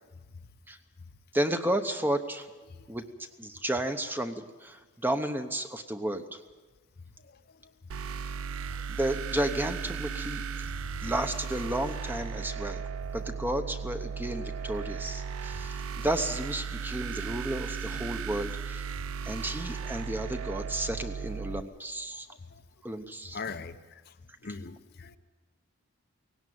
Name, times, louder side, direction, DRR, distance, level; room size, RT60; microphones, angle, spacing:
voice 1, 1.3-2.5 2.9-3.0 3.4-6.2 8.9-10.4 11.0-12.8 13.1-18.8 19.2-22.3 22.8-23.4, right 1 dB, 10° right, 8 dB, 0.9 m, -32 dB
sound 1, 7.9-21.6, right 6 dB, 75° right, 0.6 m, -36 dB
voice 2, 23.3-24.0 24.4-25.2, left 4 dB, 45° left, 10 dB, 0.7 m, -41 dB
17.5 x 17.5 x 9.4 m, 1.3 s
head